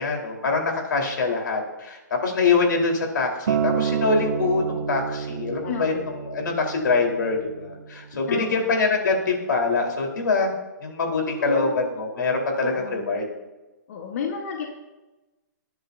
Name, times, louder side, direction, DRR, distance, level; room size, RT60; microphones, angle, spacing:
voice 1, 0.0-10.5 10.8-13.2, left 4 dB, 90° left, 1 dB, 4.2 m, -24 dB
Acoustic guitar, 3.5-7.8 8.6-8.7, right 7 dB, 85° right, 0.9 m, -28 dB
voice 2, 5.6-6.1 8.3-8.7 11.4-11.8 12.6-13.1 13.9-14.7, left 7 dB, 50° left, 2 dB, 1.4 m, -31 dB
22.0 x 10.5 x 2.8 m, 1.1 s
hypercardioid pair, 165°, 10 cm